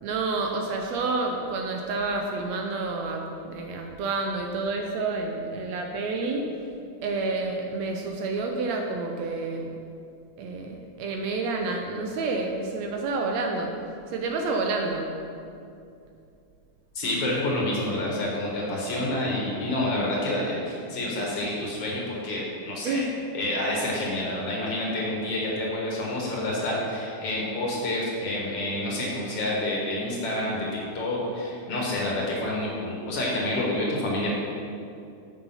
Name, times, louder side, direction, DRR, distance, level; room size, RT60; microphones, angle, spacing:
voice 1, 0.0-6.5 7.0-9.7 10.4-13.8 14.1-15.1 22.9-23.1, right 3 dB, 75° right, 2 dB, 1.8 m, -29 dB
voice 2, 17.0-23.1 23.3-30.7 30.9-34.3, left 1 dB, 55° left, -4 dB, 2.2 m, -28 dB
7.4 x 6.2 x 5.5 m, 2.6 s
omnidirectional pair, 3.4 m